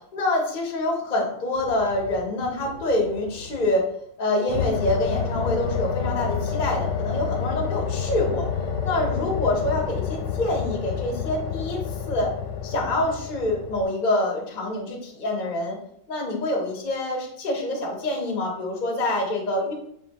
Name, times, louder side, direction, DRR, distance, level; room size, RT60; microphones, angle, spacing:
voice 1, 0.1-3.9 4.2-8.5 8.8-12.3 12.6-15.8 16.1-19.7, left 1 dB, 40° left, -1 dB, 0.7 m, -26 dB
sound 1, 1.6-3.8 4.5-13.8, left 6 dB, 70° left, 1.3 m, -29 dB
5.6 x 2.8 x 2.9 m, 0.70 s
omnidirectional pair, 2.1 m